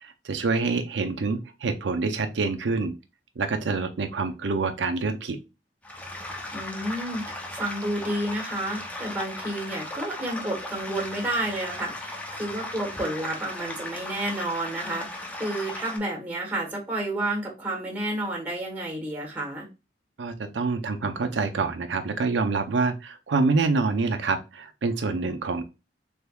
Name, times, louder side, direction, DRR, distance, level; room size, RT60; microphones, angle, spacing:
voice 1, 0.0-2.9 3.4-5.4 20.2-25.6, right 4 dB, 80° right, 8 dB, 0.6 m, -26 dB
sound 1, 5.8-16.0, left 2 dB, 10° left, 0.5 m, -37 dB
voice 2, 6.5-7.2 7.5-19.7, right 1 dB, 10° right, 0 dB, 1.2 m, -30 dB
3.5 x 3.4 x 2.3 m, 0.27 s
head